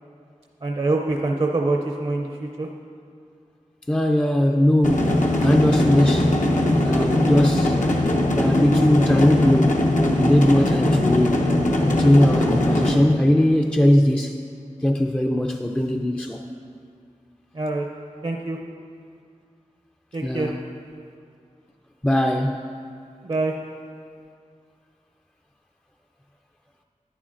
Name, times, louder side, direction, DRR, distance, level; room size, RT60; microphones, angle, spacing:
voice 1, 0.6-2.7 17.5-17.9 18.2-18.6 20.1-20.5 23.2-23.5, right 2 dB, 45° right, 1 dB, 0.5 m, -25 dB
voice 2, 3.9-6.4 6.8-7.8 8.4-9.8 10.2-11.5 11.8-14.4 14.8-16.4 20.2-20.6 22.0-22.6, left 1 dB, 10° left, 3 dB, 0.3 m, -20 dB
sound 1, 4.8-12.9, left 1 dB, 80° left, 0.8 m, -20 dB
11.0 x 9.1 x 2.5 m, 2.3 s
wide cardioid pair, 60°, 13 cm